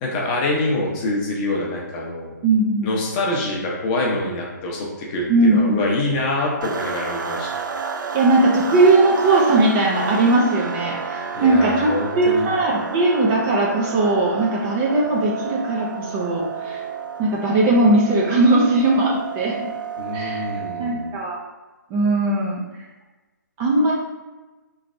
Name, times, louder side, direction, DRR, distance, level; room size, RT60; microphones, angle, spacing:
voice 1, 0.0-2.3 2.8-7.5 11.3-12.5 20.0-21.1, left 2 dB, 25° left, -2 dB, 0.7 m, -25 dB
voice 2, 2.4-3.0 5.3-5.9 8.1-16.8 17.2-19.7 20.1-20.4 20.8-21.4 21.9-22.6 23.6-23.9, right 2 dB, 20° right, -3 dB, 0.5 m, -19 dB
sound 1, 6.6-21.2, right 6 dB, 80° right, 0.4 m, -30 dB
3.2 x 3.1 x 2.5 m, 1.2 s
hypercardioid pair, 150°, 10 cm